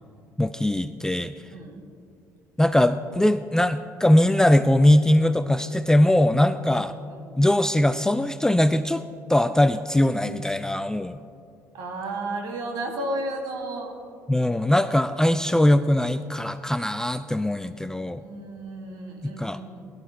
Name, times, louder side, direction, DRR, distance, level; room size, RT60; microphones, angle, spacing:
voice 1, 0.4-1.3 2.6-6.9 7.4-11.2 14.3-18.2 19.2-19.6, left 1 dB, 5° left, 12 dB, 0.4 m, -21 dB
voice 2, 1.5-1.8 6.4-6.7 7.1-7.4 11.7-13.9 18.2-19.9, right 1 dB, 55° right, 1 dB, 2.7 m, -33 dB
21.0 x 12.0 x 2.2 m, 2.5 s
figure-of-eight pair, 50°, 8 cm